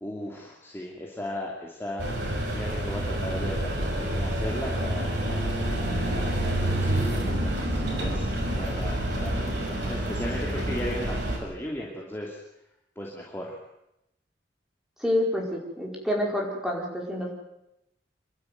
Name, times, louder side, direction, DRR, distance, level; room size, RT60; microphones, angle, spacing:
voice 1, 0.0-12.4 13.0-13.6, left 1 dB, 15° left, -3 dB, 2.7 m, -37 dB
sound 1, 2.0-11.4, right 1 dB, 65° right, 6.2 m, -28 dB
voice 2, 15.0-17.3, left 1 dB, 5° right, -1 dB, 5.0 m, -28 dB
27.0 x 12.0 x 9.4 m, 0.85 s
head